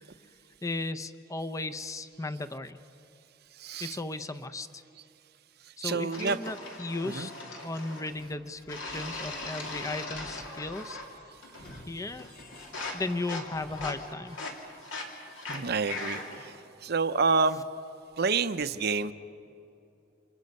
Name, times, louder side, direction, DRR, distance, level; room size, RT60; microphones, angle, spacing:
voice 1, 0.6-2.8 3.8-4.8 5.8-7.3 7.6-11.0 11.9-12.3 12.9-14.4, left 2 dB, 15° left, 9 dB, 0.6 m, -35 dB
voice 2, 3.6-4.0 5.8-6.4 7.0-7.3 15.5-17.6 18.2-19.1, right 4 dB, 55° right, 11 dB, 0.7 m, -28 dB
sound 1, 6.1-8.2 8.7-11.1 11.4-11.9 12.2-16.5, left 2 dB, 80° left, 3.1 m, -40 dB
Sliding door / Squeak, 8.0-14.1, left 1 dB, 50° left, 1.9 m, -52 dB
28.5 x 27.0 x 5.4 m, 2.7 s
head